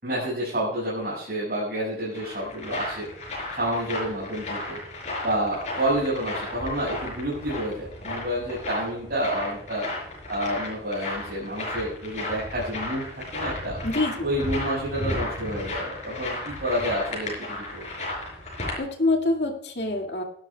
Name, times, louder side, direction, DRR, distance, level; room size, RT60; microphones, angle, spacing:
voice 1, 0.0-3.1 3.5-4.8 5.2-9.9 10.3-13.8 14.2-17.9, right 1 dB, 50° right, -7 dB, 5.9 m, -29 dB
sound 1, 1.8-18.8, left 2 dB, 40° left, 5.2 m, -34 dB
voice 2, 13.8-14.2 18.8-20.2, left 2 dB, 60° left, 1 dB, 2.2 m, -25 dB
17.5 x 12.0 x 2.3 m, 0.68 s
head